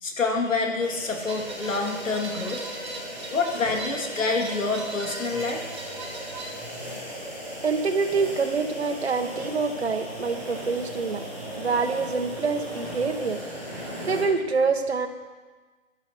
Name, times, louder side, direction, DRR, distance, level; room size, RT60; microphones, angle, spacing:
voice 1, 0.0-2.6 3.3-5.6, left 4 dB, 70° left, 3 dB, 2.2 m, -27 dB
sound 1, 0.8-14.2, equal, 5° left, 1.0 m, -37 dB
sound 2, 1.3-6.5, right 2 dB, 20° right, 1.2 m, -39 dB
voice 2, 7.6-11.3 11.6-13.4 13.8-15.1, right 4 dB, 50° right, 8 dB, 1.1 m, -26 dB
12.0 x 10.5 x 4.5 m, 1.3 s
hypercardioid pair, 170°, 40 cm